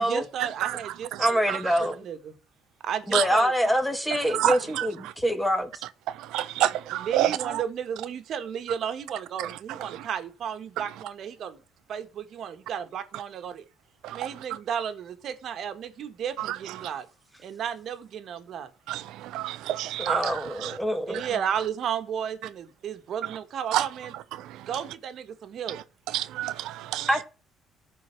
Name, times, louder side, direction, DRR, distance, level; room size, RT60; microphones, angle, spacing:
voice 1, 0.0-2.3 2.8-3.7 6.6-6.7 7.0-11.6 11.9-13.6 14.1-17.1 17.4-18.7 21.1-24.1 24.7-25.8, right 8 dB, 60° right, 1.6 m, -33 dB
voice 2, 1.2-2.0 3.1-5.7 20.0-21.2 27.1-27.2, equal, ahead, 2.0 m, -25 dB
voice 3, 4.4-4.9 6.3-7.4 14.0-14.2 18.9-19.0 19.3-20.3 20.6-20.7 23.7-23.8 26.1-27.1, right 13 dB, 85° right, 0.6 m, -27 dB
13.5 x 4.7 x 8.4 m
cardioid pair, 100°, 0 cm